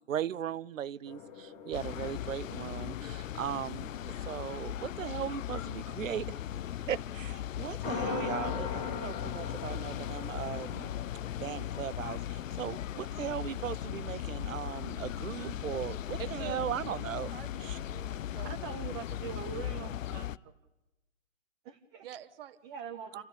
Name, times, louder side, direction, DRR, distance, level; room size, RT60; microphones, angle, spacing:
voice 1, 0.1-6.3 6.9-10.9 11.4-17.3 17.6-17.8, right 10 dB, 90° right, 21 dB, 0.8 m, -38 dB
sound 1, 1.1-7.4 7.8-15.5, left 6 dB, 20° left, 1.8 m, -43 dB
sound 2, 1.7-20.4, left 11 dB, 80° left, 0.7 m, -38 dB
voice 2, 16.2-16.6 16.9-18.7 22.0-22.6, right 12 dB, 50° right, 11 dB, 1.3 m, -46 dB
voice 3, 18.4-20.5 21.6-22.1 22.6-23.2, right 7 dB, 20° right, 4 dB, 0.9 m, -42 dB
26.5 x 15.0 x 8.6 m, 1.0 s
hypercardioid pair, 160°, 38 cm